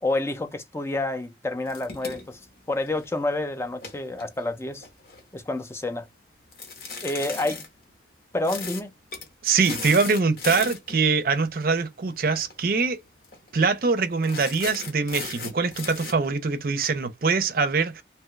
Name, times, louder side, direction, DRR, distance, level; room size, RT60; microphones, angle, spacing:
voice 1, 0.0-2.4 2.7-4.9 5.3-6.1 7.0-7.6 8.3-8.9, left 2 dB, 15° left, 0.4 m, -28 dB
sound 1, 1.6-3.2 3.7-5.2 6.5-7.7 8.4-8.8 9.1-9.3 9.6-11.0 12.3-12.5 12.8-12.9 13.2-13.6 14.2-16.1, left 4 dB, 55° left, 0.9 m, -37 dB
voice 2, 9.4-13.0 13.5-18.0, right 4 dB, 50° right, 0.5 m, -23 dB
2.9 x 2.2 x 3.1 m
head